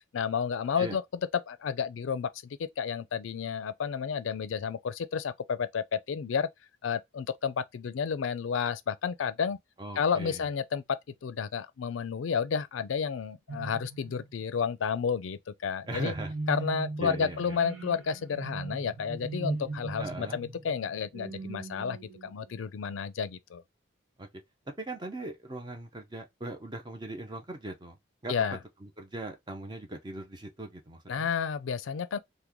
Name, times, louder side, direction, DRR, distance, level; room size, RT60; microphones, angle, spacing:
voice 1, 0.1-1.0 1.3-6.5 6.8-9.6 10.0-16.1 16.5-23.6 28.3-28.6 31.1-32.2, left 6 dB, 90° left, 0.4 m, -31 dB
voice 2, 9.8-10.5 15.9-16.3 17.0-17.6 20.0-20.4 24.2-24.3 24.7-28.0 28.2-28.3 28.8-31.3, right 2 dB, 20° right, 0.6 m, -39 dB
sound 1, 13.5-14.6 16.1-22.6, right 3 dB, 90° right, 0.9 m, -39 dB
3.0 x 2.1 x 3.5 m
head